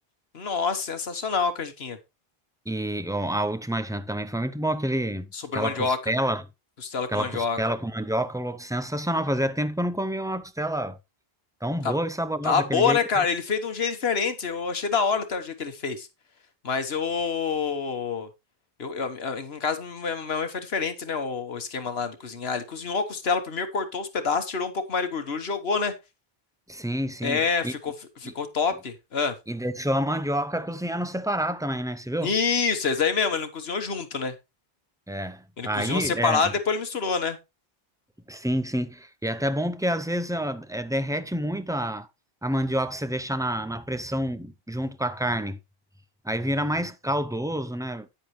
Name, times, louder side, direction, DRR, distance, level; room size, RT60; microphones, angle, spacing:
voice 1, 0.3-2.0 5.3-6.0 6.8-7.6 11.8-11.9 12.4-16.1 16.6-18.3 18.8-25.9 27.2-27.9 28.2-29.3 32.2-34.3 35.6-37.4, left 5 dB, 80° left, 1.5 m, -27 dB
voice 2, 2.7-6.4 7.1-11.0 11.6-13.2 26.7-27.7 28.2-28.3 29.5-32.3 35.1-36.4 38.3-42.1 42.4-45.6 46.2-48.1, right 1 dB, 5° right, 0.4 m, -28 dB
9.6 x 8.6 x 3.2 m
omnidirectional pair, 1.0 m